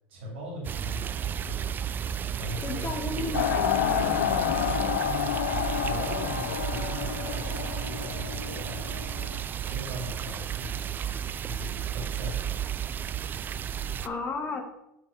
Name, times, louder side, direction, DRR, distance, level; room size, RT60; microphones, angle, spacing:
voice 1, 0.1-1.7 2.4-3.3 4.0-8.9 9.7-10.8 11.4-12.5, equal, 80° right, -3 dB, 3.1 m, -40 dB
sound 1, 0.6-14.1, right 9 dB, 30° right, 0.4 m, -33 dB
voice 2, 2.6-5.0 14.0-14.6, left 3 dB, 35° left, 4 dB, 1.7 m, -34 dB
sound 2, 3.3-9.4, left 10 dB, 85° left, 0.4 m, -29 dB
8.0 x 3.8 x 5.6 m, 0.86 s
hypercardioid pair, 85°, 6 cm